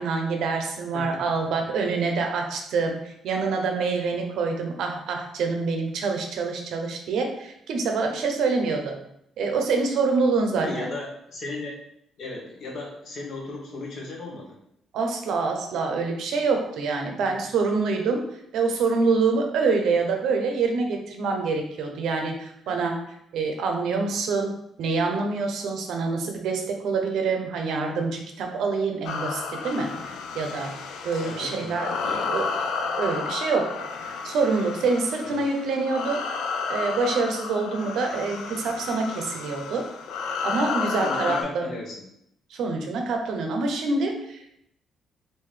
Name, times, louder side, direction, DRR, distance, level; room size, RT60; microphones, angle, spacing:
voice 1, 0.0-9.0 9.4-10.9 14.9-18.2 18.5-23.0 23.3-30.7 31.0-32.5 33.0-36.2 36.7-39.8 40.4-41.7 42.5-44.6, right 4 dB, 65° right, 3 dB, 0.6 m, -26 dB
voice 2, 10.6-11.8 12.2-14.6 22.6-22.9 31.2-31.8 32.0-32.6 35.2-35.4 41.0-42.0, left 2 dB, 45° left, -2 dB, 0.9 m, -36 dB
sound 1, 29.0-41.4, left 5 dB, 85° left, 0.4 m, -32 dB
3.7 x 2.6 x 3.2 m, 0.76 s
cardioid pair, 175°, 0 cm